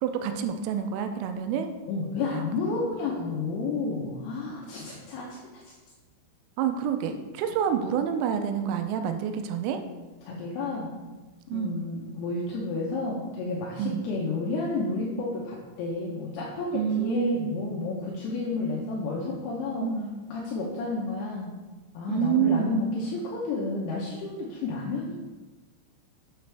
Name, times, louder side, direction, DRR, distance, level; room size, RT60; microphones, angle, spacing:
voice 1, 0.0-1.7 6.6-9.8 11.5-11.9 13.8-14.1 16.7-17.6 19.7-20.1 22.1-22.9, right 8 dB, 85° right, 7 dB, 3.2 m, -28 dB
voice 2, 1.9-5.7 10.3-11.0 11.5-19.9 20.3-21.5 21.9-25.2, left 3 dB, 80° left, -4 dB, 2.3 m, -31 dB
7.9 x 6.6 x 3.4 m, 1.3 s
omnidirectional pair, 5.8 m